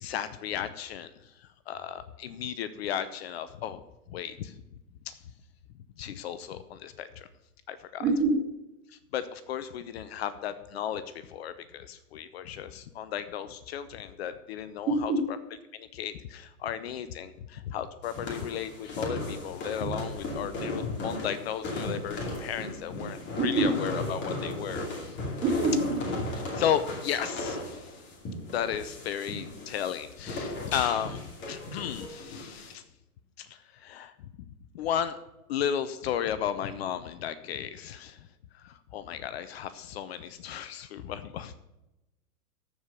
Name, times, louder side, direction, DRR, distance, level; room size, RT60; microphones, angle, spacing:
voice 1, 0.0-3.8 4.1-4.6 5.1-5.2 6.0-7.3 7.7-8.1 8.9-15.4 15.7-25.2 26.5-28.0 28.5-32.8 33.4-34.3 34.7-35.2 35.5-38.3 38.5-41.5, left 9 dB, 45° left, 13 dB, 0.7 m, -34 dB
voice 2, 8.0-8.4 14.9-15.3 23.4-23.7 25.4-25.9, right 2 dB, 20° right, -2 dB, 2.1 m, -25 dB
sound 1, 18.0-32.7, left 1 dB, 25° left, 2.5 m, -36 dB
13.5 x 4.8 x 6.9 m, 0.94 s
hypercardioid pair, 125°, 45 cm